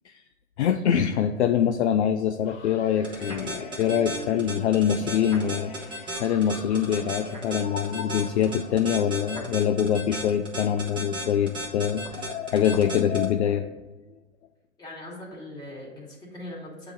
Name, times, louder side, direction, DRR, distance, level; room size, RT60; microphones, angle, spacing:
voice 1, 0.6-5.7 6.2-13.7, left 9 dB, 55° left, 6 dB, 0.5 m, -24 dB
sound 1, 2.4-9.5, left 3 dB, 35° left, 1.0 m, -42 dB
sound 2, 3.0-13.2, right 1 dB, 10° right, 1.1 m, -34 dB
voice 2, 14.8-16.9, left 1 dB, 10° left, -5 dB, 1.9 m, -40 dB
8.1 x 3.0 x 5.3 m, 1.2 s
hypercardioid pair, 125°, 41 cm